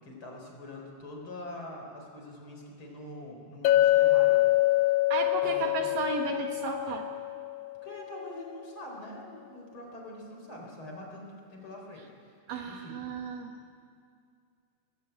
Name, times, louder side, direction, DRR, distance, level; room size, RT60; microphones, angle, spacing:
voice 1, 0.0-4.4 5.4-5.9 7.8-12.4 12.7-13.0, left 1 dB, 30° left, 0 dB, 4.9 m, -44 dB
Chink clink, 3.6-7.9, left 15 dB, 90° left, 3.0 m, -25 dB
voice 2, 5.1-7.1 12.5-13.5, right 4 dB, 65° right, 3 dB, 2.8 m, -33 dB
25.5 x 21.5 x 8.3 m, 2.3 s
omnidirectional pair, 4.6 m